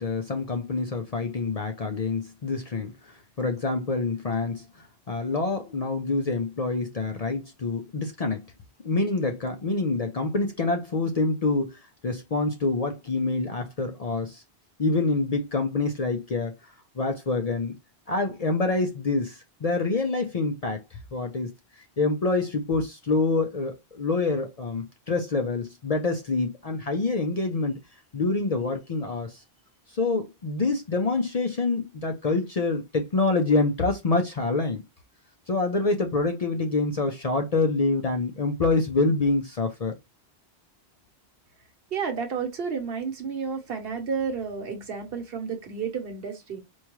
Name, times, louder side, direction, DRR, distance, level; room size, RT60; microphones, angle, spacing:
voice 1, 0.0-4.7 5.1-8.5 8.8-14.4 14.8-16.5 17.0-17.7 18.1-21.5 22.0-27.8 28.1-29.4 29.9-34.8 35.5-39.9, left 3 dB, 45° left, 0.5 m, -26 dB
voice 2, 41.9-46.6, right 6 dB, 65° right, 1.1 m, -31 dB
4.5 x 2.3 x 3.0 m
omnidirectional pair, 1.1 m